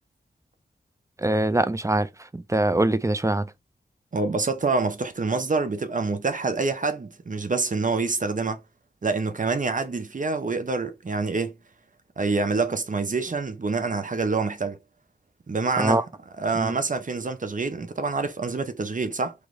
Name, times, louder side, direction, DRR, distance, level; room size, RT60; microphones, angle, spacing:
voice 1, 1.2-2.1 2.3-3.5 15.8-16.0 16.6-16.7, right 2 dB, 15° right, 0.6 m, -23 dB
voice 2, 4.1-8.6 9.0-11.5 12.2-14.8 15.5-16.0 16.4-19.3, right 4 dB, 45° right, 0.8 m, -26 dB
3.2 x 3.1 x 3.9 m
cardioid pair, 45°, 18 cm